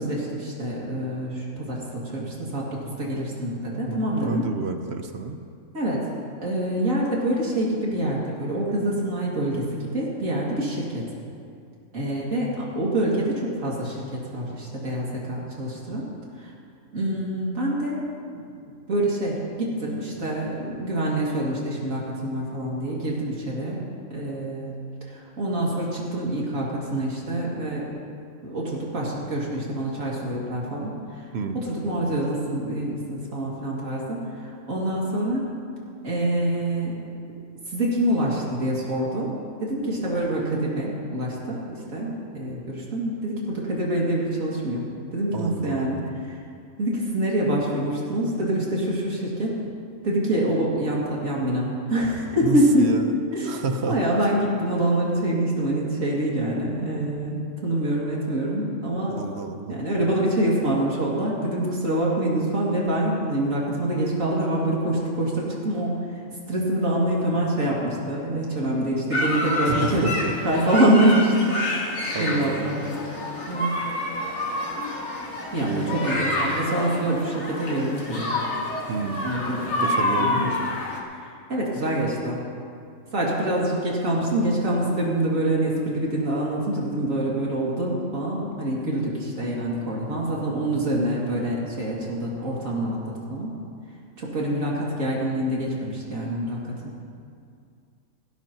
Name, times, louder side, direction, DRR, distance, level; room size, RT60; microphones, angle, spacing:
voice 1, 0.0-4.5 5.7-6.1 6.4-11.1 11.9-16.1 16.3-16.5 16.9-18.0 18.3-18.5 18.9-23.8 24.1-24.8 25.0-27.9 28.4-31.3 31.5-35.5 36.0-37.0 37.7-39.3 39.6-46.4 46.8-49.6 50.0-52.9 53.3-53.5 53.9-59.2 59.7-66.2 66.5-70.1 70.4-72.9 73.5-73.8 75.5-78.3 79.2-79.9 80.2-80.5 81.5-82.4 83.1-93.5 94.2-96.9, right 1 dB, 85° right, -5 dB, 2.8 m, -26 dB
voice 2, 3.7-5.4 31.3-31.6 45.3-46.1 52.4-53.9 59.1-59.8 69.7-70.3 72.1-72.8 75.6-76.2 78.9-79.3 79.8-80.6, right 4 dB, 55° right, 6 dB, 1.1 m, -30 dB
sound 1, 69.1-81.0, left 1 dB, 60° left, 1.9 m, -28 dB
17.5 x 16.5 x 3.0 m, 2.3 s
omnidirectional pair, 1.4 m